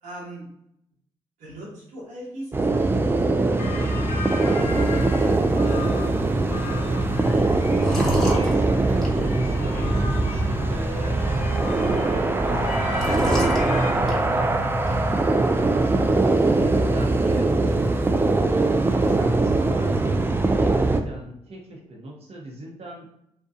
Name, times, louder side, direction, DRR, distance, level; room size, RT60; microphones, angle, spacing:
voice 1, 0.0-0.5 1.4-6.5, right 1 dB, 90° right, -5 dB, 1.1 m, -41 dB
sound 1, 2.5-21.0, right 2 dB, 20° right, 0.3 m, -22 dB
sound 2, 3.6-13.9, left 4 dB, 80° left, 0.4 m, -35 dB
sound 3, 4.6-16.6, left 1 dB, 5° left, 1.0 m, -35 dB
voice 2, 7.9-17.9 18.4-23.1, right 2 dB, 55° right, -1 dB, 0.8 m, -38 dB
2.6 x 2.2 x 2.5 m, 0.76 s
supercardioid pair, 50°, 12 cm